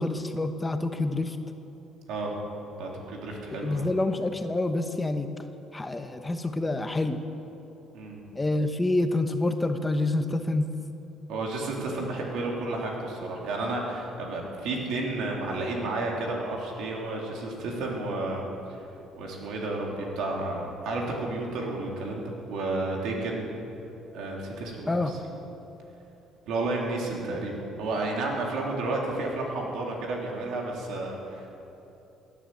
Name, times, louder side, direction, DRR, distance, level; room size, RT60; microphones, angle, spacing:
voice 1, 0.0-1.4 3.6-5.3 5.7-7.2 8.4-10.7 24.9-25.1, left 2 dB, 15° left, 7 dB, 1.0 m, -27 dB
voice 2, 2.8-3.9 7.9-8.2 11.3-18.4 18.7-18.8 19.2-23.4 24.1-25.2 26.5-31.6, right 2 dB, 75° right, -1 dB, 3.6 m, -31 dB
17.5 x 10.0 x 7.9 m, 2.9 s
cardioid pair, 90°, 0 cm